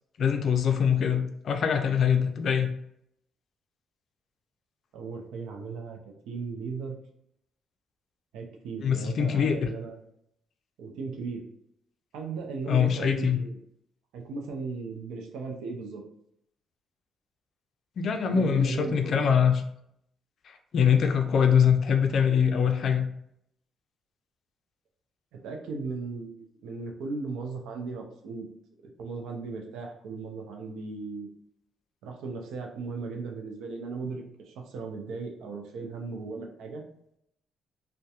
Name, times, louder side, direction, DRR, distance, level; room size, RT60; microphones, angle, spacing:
voice 1, 0.2-2.7 8.8-9.7 12.7-13.4 18.0-19.5 20.7-23.1, left 7 dB, 60° left, 6 dB, 0.4 m, -23 dB
voice 2, 4.9-7.0 8.3-10.0 10.8-11.4 12.1-13.6 14.1-16.0 18.3-19.2 25.3-28.5 28.8-31.3 32.0-36.8, right 4 dB, 90° right, 2 dB, 0.5 m, -37 dB
2.7 x 2.1 x 2.3 m, 0.74 s
cardioid pair, 90°, 0 cm